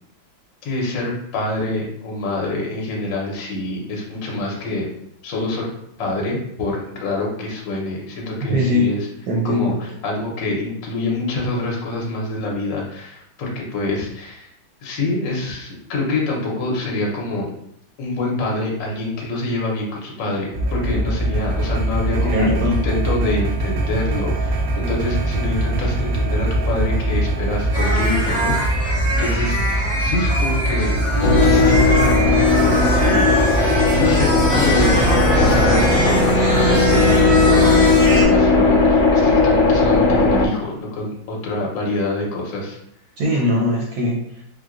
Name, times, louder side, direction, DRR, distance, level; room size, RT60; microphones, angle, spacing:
voice 1, 0.6-4.9 5.2-5.7 6.0-9.1 9.4-14.5 14.8-17.5 18.0-33.4 33.9-42.8, left 2 dB, 70° left, -2 dB, 1.4 m, -26 dB
voice 2, 8.5-9.0 9.3-9.8 22.2-22.8 43.2-44.4, left 1 dB, 70° right, -2 dB, 1.0 m, -20 dB
sound 1, 20.5-36.0, right 1 dB, 85° right, 1.4 m, -22 dB
sound 2, 27.7-38.2, equal, 30° left, 0.6 m, -24 dB
sound 3, 31.2-40.5, left 3 dB, 85° left, 1.4 m, -16 dB
4.3 x 2.2 x 2.4 m, 0.74 s
omnidirectional pair, 2.2 m